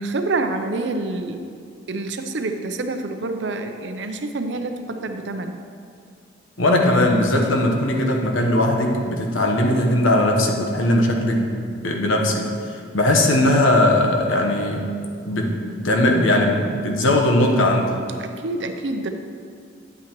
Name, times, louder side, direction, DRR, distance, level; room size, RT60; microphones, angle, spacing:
voice 1, 0.0-1.5 1.9-5.6 18.2-19.1, right 2 dB, 65° right, 6 dB, 0.6 m, -27 dB
voice 2, 6.6-11.5 11.8-14.9 15.3-15.5 15.8-17.9, left 1 dB, 90° left, 1 dB, 1.1 m, -19 dB
9.3 x 8.5 x 3.0 m, 2.3 s
head